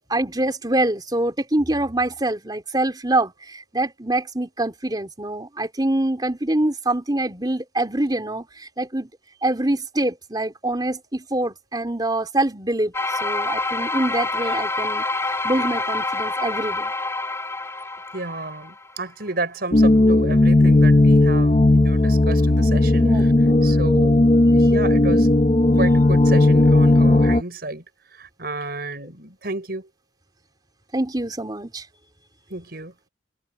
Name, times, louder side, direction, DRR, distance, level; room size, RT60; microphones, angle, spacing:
voice 1, 0.1-9.1 9.4-16.9 22.9-23.7 30.9-31.9, right 1 dB, 25° right, 3.5 m, -25 dB
sound 1, 12.9-18.9, left 2 dB, 15° left, 5.3 m, -27 dB
voice 2, 18.1-23.3 23.6-25.3 25.7-27.8 28.1-29.9 32.5-32.9, right 2 dB, 55° right, 6.0 m, -32 dB
sound 2, 19.7-27.4, left 2 dB, 35° left, 0.7 m, -15 dB
head